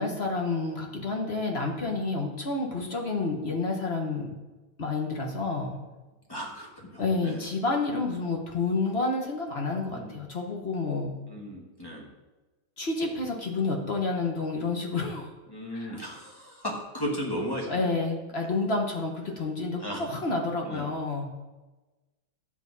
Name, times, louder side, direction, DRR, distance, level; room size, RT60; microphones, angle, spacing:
voice 1, 0.0-4.3 4.8-5.8 7.0-11.1 12.8-15.3 15.7-16.0 17.7-21.2, left 3 dB, 40° left, 1 dB, 1.0 m, -29 dB
voice 2, 6.3-7.4 9.9-10.2 11.3-12.1 15.5-17.9 19.8-20.0 20.6-20.9, equal, 10° left, -1 dB, 1.3 m, -35 dB
10.5 x 8.0 x 4.0 m, 1.2 s
omnidirectional pair, 2.4 m